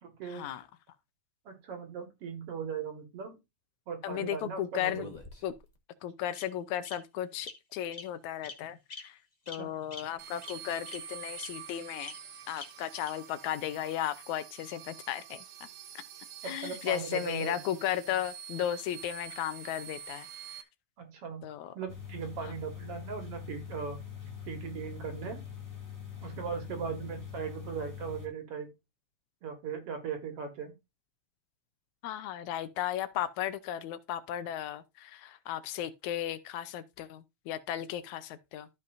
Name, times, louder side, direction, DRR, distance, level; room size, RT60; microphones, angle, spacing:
voice 1, 0.0-0.5 1.5-3.4 3.9-5.1 9.5-9.7 16.4-17.6 21.0-21.4 21.7-24.0 24.5-25.4 26.2-28.7 29.4-30.7, right 6 dB, 55° right, 2.4 m, -38 dB
voice 2, 4.0-5.1 5.4-5.5 6.0-9.2 9.5-12.1 12.5-15.4 16.4-20.3 21.4-21.7 32.0-38.7, left 11 dB, 80° left, 2.1 m, -35 dB
Bird vocalization bird call bird song, 4.9-5.7 6.3-6.4 6.8-6.9 7.4-7.5 7.9-8.1 8.4-8.6 8.9-9.0 9.5-9.6 9.9-10.0 10.4-10.5 10.9-11.0 11.4-11.5 12.0-12.1 12.6-12.7 13.0-13.1, left 3 dB, 45° left, 0.5 m, -43 dB
sound 1, 10.2-20.6, right 8 dB, 75° right, 2.1 m, -47 dB
sound 2, 21.9-28.3, left 9 dB, 10° left, 1.4 m, -43 dB
13.5 x 5.5 x 2.6 m
omnidirectional pair, 3.3 m